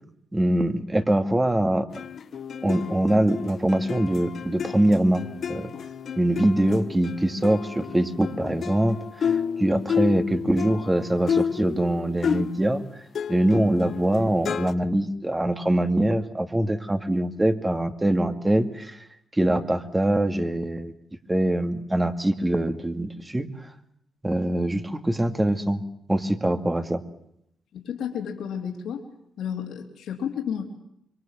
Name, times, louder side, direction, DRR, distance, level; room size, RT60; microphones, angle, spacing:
voice 1, 0.3-1.9 2.6-5.7 6.2-12.8 13.3-19.0 19.3-20.9 21.3-23.5 24.2-25.8 26.1-27.0, right 1 dB, 15° right, 8 dB, 2.3 m, -23 dB
sound 1, 1.9-12.8 13.1-14.7, left 7 dB, 65° left, 1.0 m, -31 dB
voice 2, 27.7-29.0 29.4-30.6, left 8 dB, 80° left, 2 dB, 3.5 m, -31 dB
25.5 x 23.0 x 7.5 m, 0.75 s
cardioid pair, 75°, 0 cm